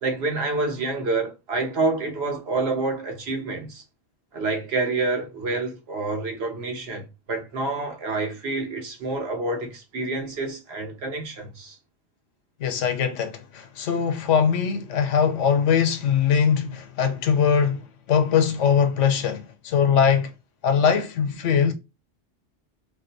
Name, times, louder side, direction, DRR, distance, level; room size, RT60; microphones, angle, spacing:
voice 1, 0.0-3.8 4.3-11.8, right 3 dB, 60° right, 1.0 m, -28 dB
voice 2, 12.6-17.8 18.1-20.3 20.6-21.7, left 7 dB, 80° left, 1.0 m, -21 dB
2.6 x 2.1 x 3.9 m
omnidirectional pair, 1.3 m